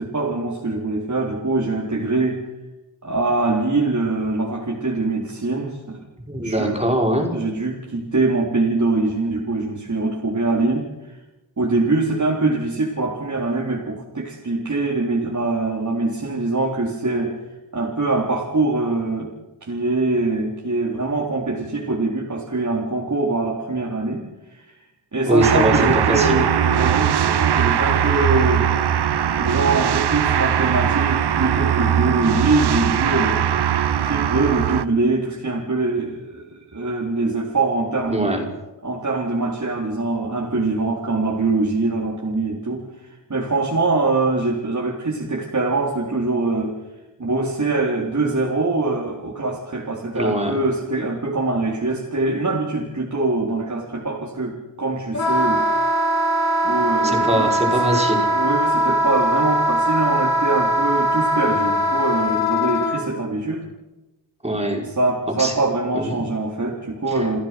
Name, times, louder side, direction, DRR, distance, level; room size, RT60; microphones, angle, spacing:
voice 1, 0.0-2.4 3.0-6.1 6.4-6.8 7.3-11.1 11.6-17.4 17.7-19.3 19.6-24.7 25.1-28.7 29.4-33.4 34.0-38.3 38.8-46.7 47.2-55.6 56.6-58.0 58.3-63.6 64.8-67.4, right 3 dB, 40° right, -3 dB, 4.3 m, -23 dB
voice 2, 6.3-7.3 25.3-26.4 38.1-38.4 50.1-50.6 57.0-58.3 64.4-64.8 65.4-65.5 65.9-66.2 67.1-67.3, right 1 dB, 15° right, 1 dB, 5.7 m, -22 dB
sound 1, 25.4-34.9, right 9 dB, 60° right, 0.9 m, -20 dB
Wind instrument woodwind instrument, 55.1-63.0, right 1 dB, 35° left, 5.8 m, -20 dB
29.5 x 15.5 x 6.2 m, 1.0 s
cardioid pair, 65°, 44 cm